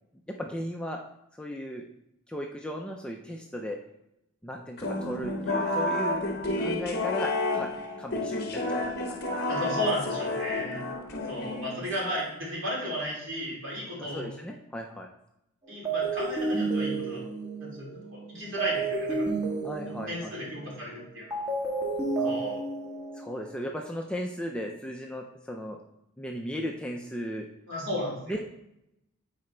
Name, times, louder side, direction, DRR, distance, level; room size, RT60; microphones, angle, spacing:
voice 1, 0.3-1.0 1.4-1.9 2.3-3.8 4.4-6.3 6.6-7.7 8.0-8.8 9.1-9.2 11.0-11.2 14.0-15.1 19.6-20.3 22.2-22.4 23.1-25.8 26.2-27.5 28.3-28.5, equal, 5° left, 1 dB, 0.4 m, -36 dB
sound 1, 4.8-12.2, left 2 dB, 45° left, 0.9 m, -30 dB
voice 2, 9.5-10.8 11.3-14.3 15.7-17.2 17.6-19.6 19.8-21.4 22.2-22.6 27.7-28.4, equal, 55° right, -4 dB, 2.8 m, -34 dB
sound 2, 15.8-23.5, right 3 dB, 15° right, 1.4 m, -31 dB
9.6 x 4.3 x 3.3 m, 0.83 s
head